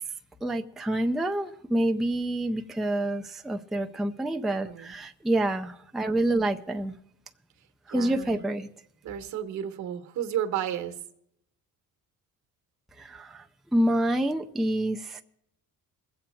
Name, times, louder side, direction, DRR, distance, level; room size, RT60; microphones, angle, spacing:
voice 1, 0.4-6.9 7.9-8.7 13.0-13.5 13.7-15.2, right 1 dB, ahead, 4 dB, 0.4 m, -27 dB
voice 2, 4.6-4.9 7.9-8.4 9.0-11.0, right 10 dB, 65° right, 8 dB, 1.2 m, -32 dB
21.0 x 7.7 x 4.4 m, 0.73 s
cardioid pair, 140°, 31 cm